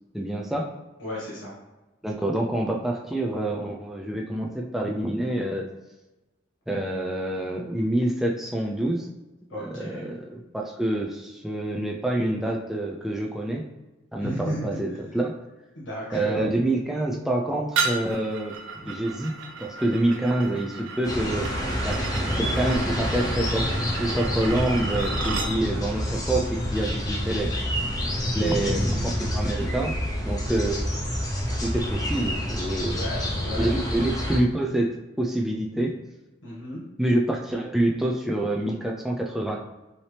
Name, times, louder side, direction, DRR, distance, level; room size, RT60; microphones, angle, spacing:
voice 1, 0.1-0.7 2.0-5.7 6.7-9.1 9.7-13.6 14.1-15.3 16.1-18.5 18.9-19.3 19.6-21.5 21.8-22.0 22.4-27.5 28.3-29.9 30.2-30.8 31.6-33.0 33.6-36.0 37.0-39.6, right 1 dB, ahead, -1 dB, 0.4 m, -27 dB
voice 2, 1.0-1.5 9.5-10.1 14.2-14.8 15.7-16.4 18.7-18.9 27.9-28.1 28.4-28.7 32.8-33.7 36.4-36.8, equal, 80° left, -7 dB, 1.5 m, -33 dB
sound 1, 17.8-25.5, right 4 dB, 90° right, 0.6 m, -33 dB
sound 2, 21.0-34.4, equal, 20° left, 0.8 m, -28 dB
5.7 x 2.9 x 3.3 m, 1.1 s
head